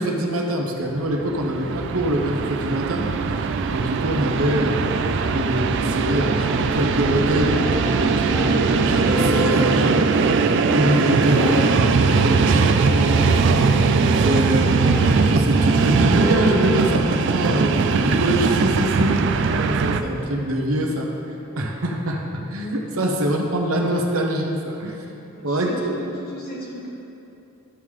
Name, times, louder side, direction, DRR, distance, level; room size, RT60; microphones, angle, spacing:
voice 1, 0.0-3.1 3.4-3.5 3.7-21.1 21.6-25.0 25.4-26.0, right 1 dB, 75° right, 1 dB, 0.9 m, -24 dB
Train, 1.0-20.0, right 4 dB, 55° right, 0.3 m, -20 dB
sound 1, 6.4-23.1, left 2 dB, 10° left, 1.2 m, -34 dB
voice 2, 25.3-26.9, equal, 45° left, -4 dB, 1.5 m, -37 dB
12.5 x 5.6 x 3.2 m, 2.9 s
head